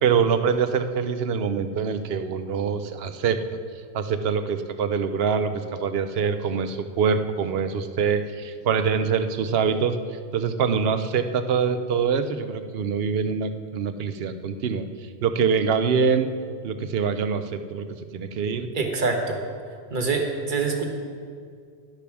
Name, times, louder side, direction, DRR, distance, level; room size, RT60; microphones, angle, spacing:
voice 1, 0.0-3.4 3.9-10.0 10.3-14.9 15.2-16.3 16.6-17.9 18.1-18.7, right 6 dB, 70° right, 9 dB, 0.9 m, -24 dB
voice 2, 18.7-19.4 19.9-20.9, right 4 dB, 50° right, 3 dB, 1.3 m, -25 dB
11.5 x 6.9 x 6.0 m, 2.2 s
omnidirectional pair, 1.1 m